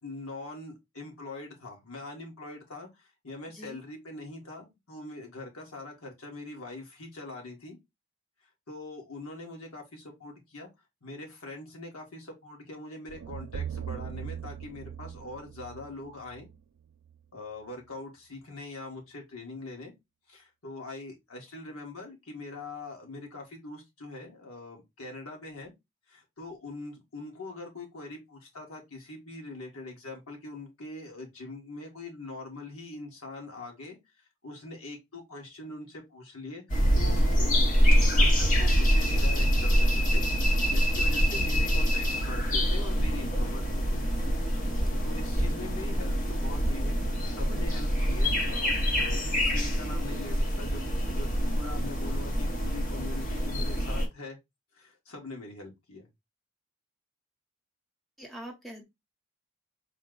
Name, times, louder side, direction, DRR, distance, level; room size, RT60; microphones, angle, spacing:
voice 1, 0.0-7.8 8.7-10.7 11.0-16.5 17.3-19.9 20.3-25.7 26.1-34.0 34.4-40.3 40.7-44.0 45.0-47.0 47.3-54.4 54.7-56.1, left 2 dB, 85° left, 1.6 m, -43 dB
voice 2, 3.5-3.8 44.6-44.9 47.5-47.8 58.2-58.8, equal, ahead, 0.9 m, -45 dB
sound 1, 13.1-17.2, right 8 dB, 85° right, 0.3 m, -40 dB
sound 2, 36.7-54.1, equal, 35° left, 0.9 m, -25 dB
4.4 x 2.2 x 3.7 m
head